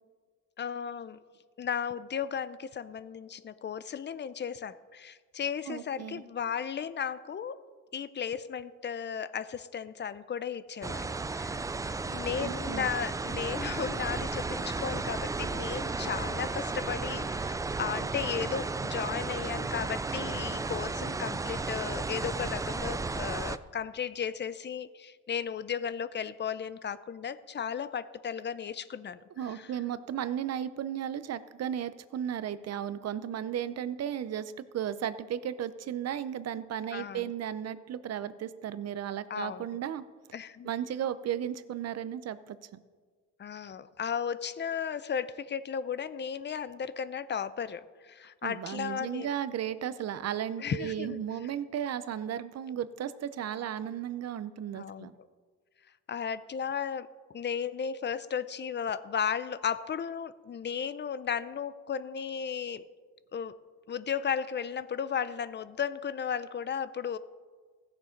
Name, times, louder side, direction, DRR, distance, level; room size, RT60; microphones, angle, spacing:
voice 1, 0.6-1.2 1.6-7.6 7.9-11.1 11.4-11.7 12.1-29.7 36.9-37.3 39.3-39.7 40.3-40.7 43.4-49.3 50.6-51.2 54.7-55.1 56.1-62.9 63.3-63.6 63.9-67.2, left 7 dB, 35° left, 15 dB, 0.6 m, -35 dB
voice 2, 5.7-6.2 12.4-12.9 29.4-40.0 40.6-42.8 48.4-55.1, right 10 dB, 55° right, 14 dB, 0.7 m, -35 dB
sound 1, 10.8-23.6, right 3 dB, 10° right, 0.3 m, -34 dB
15.5 x 7.0 x 5.1 m, 1.5 s
cardioid pair, 90°, 30 cm